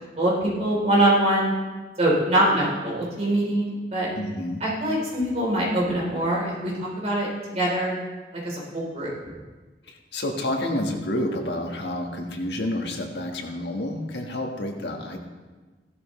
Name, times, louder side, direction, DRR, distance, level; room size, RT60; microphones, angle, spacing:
voice 1, 0.2-1.5 2.0-4.1 4.6-7.3 7.5-8.0 8.4-9.1, right 1 dB, 35° right, -4 dB, 3.8 m, -23 dB
voice 2, 4.2-4.6 9.8-15.2, left 1 dB, 70° left, 2 dB, 1.6 m, -29 dB
16.0 x 12.0 x 3.2 m, 1.3 s
head